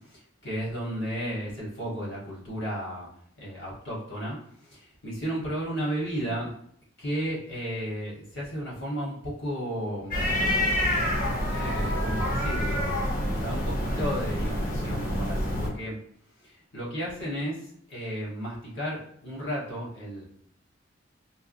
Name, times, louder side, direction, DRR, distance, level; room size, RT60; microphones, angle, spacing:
voice 1, 0.1-3.1 3.4-4.4 4.6-6.5 7.0-11.1 11.5-16.0 16.7-20.2, equal, 65° left, -5 dB, 1.5 m, -34 dB
sound 1, 10.1-15.7, equal, 45° left, 1.0 m, -27 dB
4.6 x 2.2 x 2.6 m, 0.66 s
head